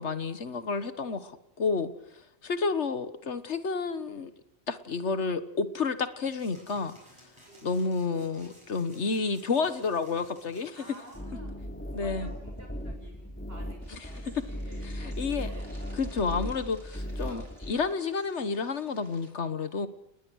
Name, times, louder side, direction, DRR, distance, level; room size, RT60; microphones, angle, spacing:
voice 1, 0.0-1.9 2.4-4.3 4.7-6.9 7.6-10.7 11.9-12.3 14.8-15.5 15.9-19.9, left 4 dB, 75° left, 12 dB, 1.7 m, -30 dB
sound 1, 6.2-11.2, equal, 25° right, 7.2 m, -56 dB
voice 2, 10.7-11.6 12.0-15.7 17.0-17.5, equal, 55° right, 1 dB, 7.9 m, -52 dB
sound 2, 11.1-17.7, equal, 10° left, 4.1 m, -37 dB
sound 3, 13.8-19.3, right 1 dB, 80° right, 4.8 m, -58 dB
29.5 x 19.5 x 6.4 m, 0.78 s
omnidirectional pair, 1.2 m